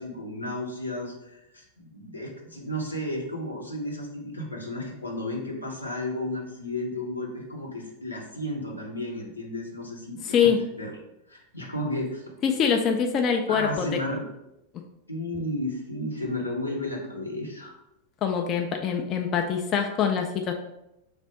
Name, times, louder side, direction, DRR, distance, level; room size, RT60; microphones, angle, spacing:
voice 1, 0.0-10.9 11.3-12.3 13.5-14.2 15.1-17.8, left 1 dB, 85° left, -1 dB, 0.8 m, -33 dB
voice 2, 10.2-10.6 12.4-13.9 18.2-20.5, left 7 dB, 30° left, 4 dB, 0.3 m, -24 dB
3.3 x 2.5 x 4.4 m, 0.88 s
figure-of-eight pair, 90°, 0 cm